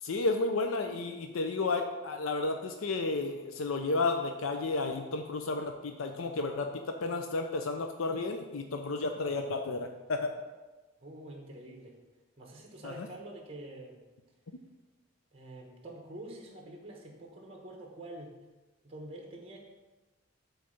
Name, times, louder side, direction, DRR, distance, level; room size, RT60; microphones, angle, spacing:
voice 1, 0.0-10.3 12.8-13.1, left 3 dB, 80° left, 5 dB, 0.5 m, -32 dB
voice 2, 11.0-12.0 12.4-14.0 15.3-18.3 18.8-19.6, right 1 dB, 30° right, 0 dB, 1.1 m, -46 dB
8.1 x 3.2 x 6.3 m, 1.2 s
head